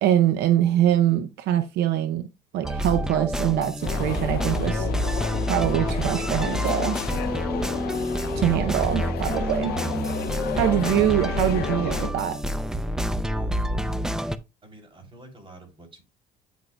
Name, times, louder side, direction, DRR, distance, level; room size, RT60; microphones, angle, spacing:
voice 1, 0.0-2.3 2.5-4.9 5.5-7.0 8.4-9.7 10.5-12.4, right 11 dB, 80° right, 0.7 m, -23 dB
sound 1, 2.6-14.4, equal, 5° right, 0.5 m, -28 dB
sound 2, 3.8-12.1, left 11 dB, 70° left, 0.6 m, -32 dB
voice 2, 13.3-14.2 14.6-16.0, right 2 dB, 30° right, 3.2 m, -48 dB
9.2 x 6.2 x 2.2 m
cardioid pair, 110°, 17 cm